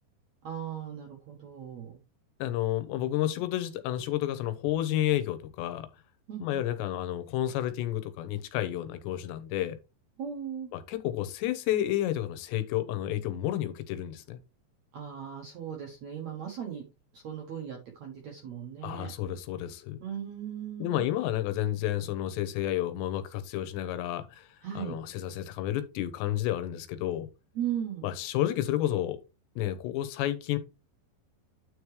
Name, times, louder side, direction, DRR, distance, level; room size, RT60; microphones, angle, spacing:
voice 1, 0.4-2.0 6.3-6.6 10.2-10.7 14.9-16.8 17.1-19.1 20.0-21.0 24.6-25.0 27.5-28.0, right 9 dB, 70° right, 1.7 m, -37 dB
voice 2, 2.4-5.9 6.4-9.8 10.7-14.4 18.8-20.0 20.8-24.5 24.8-27.3 28.0-29.2 29.6-30.6, left 13 dB, 85° left, 3.1 m, -31 dB
9.6 x 4.8 x 3.2 m
omnidirectional pair, 4.9 m